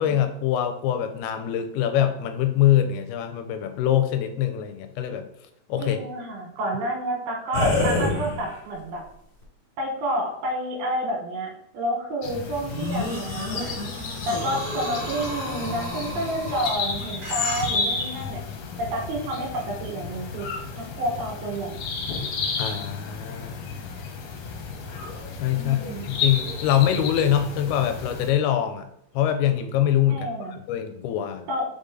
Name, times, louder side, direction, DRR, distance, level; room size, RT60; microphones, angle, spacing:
voice 1, 0.0-5.3 5.7-6.0 22.6-23.7 25.4-28.9 29.2-31.5, left 10 dB, 90° left, 7 dB, 2.6 m, -24 dB
voice 2, 5.8-9.0 9.8-13.7 14.3-18.4 18.8-20.5 20.7-21.8 25.5-26.2 30.1-30.6 31.5-31.6, right 1 dB, 80° right, 0 dB, 3.3 m, -29 dB
sound 1, 7.5-8.8 9.4-9.5 12.7-16.7, left 2 dB, 30° left, 2.3 m, -29 dB
sound 2, 12.2-28.3, left 4 dB, 70° left, 2.3 m, -32 dB
sound 3, 12.9-14.0 16.6-18.3, equal, 50° right, 0.8 m, -40 dB
5.3 x 5.1 x 3.7 m, 0.71 s
omnidirectional pair, 4.5 m